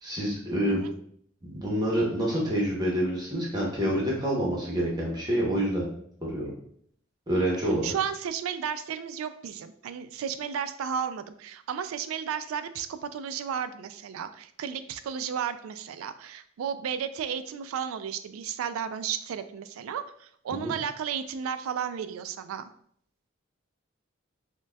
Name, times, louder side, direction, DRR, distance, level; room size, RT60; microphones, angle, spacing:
voice 1, 0.0-0.8 1.4-5.9 6.2-6.5 7.3-7.9 20.5-20.7, equal, 20° right, -4 dB, 0.8 m, -27 dB
voice 2, 7.8-22.7, right 8 dB, 85° right, 11 dB, 0.3 m, -33 dB
5.9 x 2.2 x 2.2 m, 0.65 s
head